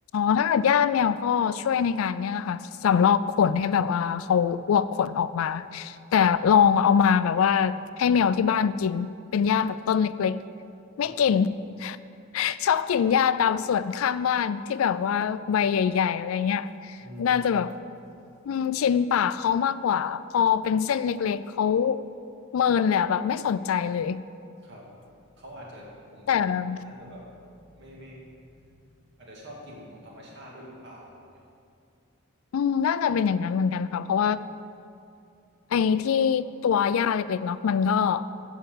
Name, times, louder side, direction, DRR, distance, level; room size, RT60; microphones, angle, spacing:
voice 1, 0.1-10.4 11.0-11.5 11.8-12.0 12.3-17.7 18.5-22.0 22.5-24.2 26.3-26.9 32.5-34.4 35.7-38.2, left 7 dB, 75° left, 15 dB, 0.3 m, -24 dB
voice 2, 17.0-17.4 24.6-25.0 25.4-26.4 26.8-28.4 28.8-28.9 29.2-31.3, equal, 55° right, -3 dB, 2.2 m, -45 dB
11.5 x 4.6 x 7.9 m, 2.5 s
head